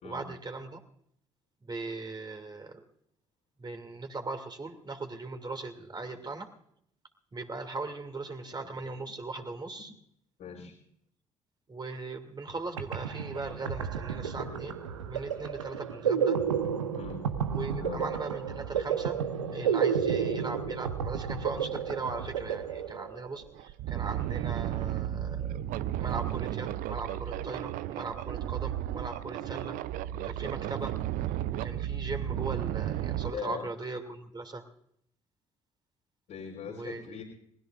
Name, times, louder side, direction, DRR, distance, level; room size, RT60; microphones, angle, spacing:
voice 1, 0.0-0.8 1.6-2.8 3.6-6.5 7.3-9.9 11.7-16.4 17.5-19.2 19.5-25.6 26.0-29.8 30.2-31.0 31.6-34.6 36.7-37.2, right 3 dB, 25° right, 6 dB, 2.6 m, -39 dB
voice 2, 10.4-10.8 17.0-17.3 17.7-18.1 33.3-33.7 36.3-37.2, left 7 dB, 55° left, -3 dB, 3.8 m, -40 dB
sound 1, 12.5-12.6 12.8-23.4, right 7 dB, 85° right, 1.0 m, -31 dB
sound 2, 22.9-23.0 23.4-33.3, right 12 dB, 60° right, 0.6 m, -33 dB
26.5 x 20.0 x 2.5 m, 0.71 s
figure-of-eight pair, 45°, 16 cm